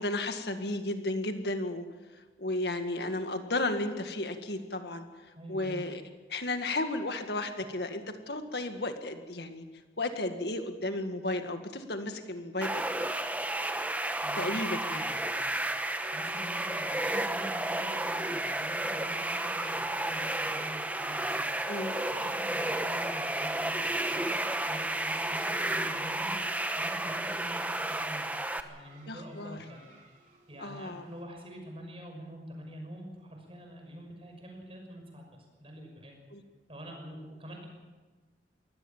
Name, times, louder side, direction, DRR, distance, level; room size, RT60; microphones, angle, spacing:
voice 1, 0.0-1.9 2.4-5.1 5.5-6.0 6.3-9.6 10.0-12.8 14.4-15.1 21.7-21.9 29.1-29.6 30.6-31.0 36.3-36.4, left 2 dB, 70° left, 7 dB, 1.9 m, -33 dB
voice 2, 5.3-5.8 14.2-15.6 16.1-21.4 22.1-24.4 24.6-28.3 28.7-29.8 30.5-36.2 36.7-37.7, equal, 35° right, 3 dB, 5.9 m, -46 dB
sound 1, 12.6-28.6, right 1 dB, 10° right, 1.0 m, -32 dB
sound 2, 16.0-31.2, right 4 dB, 50° right, 4.0 m, -52 dB
23.0 x 17.0 x 7.4 m, 1.3 s
head